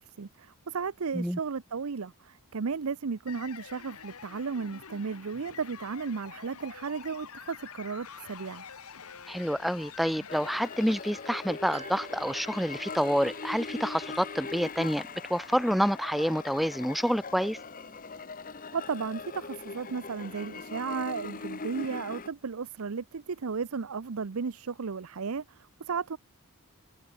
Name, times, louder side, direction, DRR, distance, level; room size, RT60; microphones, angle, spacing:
voice 1, 0.0-8.6 18.7-26.2, right 5 dB, 75° right, 0.6 m, -34 dB
sound 1, 3.3-14.4, left 6 dB, 85° left, 1.7 m, -48 dB
voice 2, 9.3-17.6, equal, ahead, 0.6 m, -28 dB
sound 2, 10.3-22.3, left 4 dB, 40° left, 1.0 m, -41 dB
sound 3, 11.7-23.3 23.6-23.7, right 4 dB, 30° right, 1.7 m, -55 dB
head